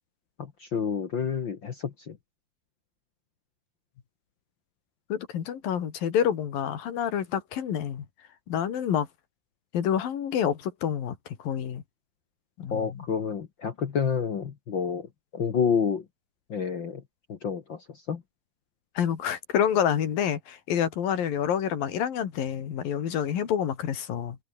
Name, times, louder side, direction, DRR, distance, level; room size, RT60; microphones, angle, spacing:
voice 1, 0.4-2.2 12.7-15.1 15.3-16.0 16.5-17.0 17.3-18.2, left 6 dB, 50° left, 1.6 m, -29 dB
voice 2, 5.1-8.1 8.5-9.1 9.7-11.8 12.6-13.1 19.0-24.4, left 9 dB, 85° left, 4.2 m, -28 dB
omnidirectional pair, 3.9 m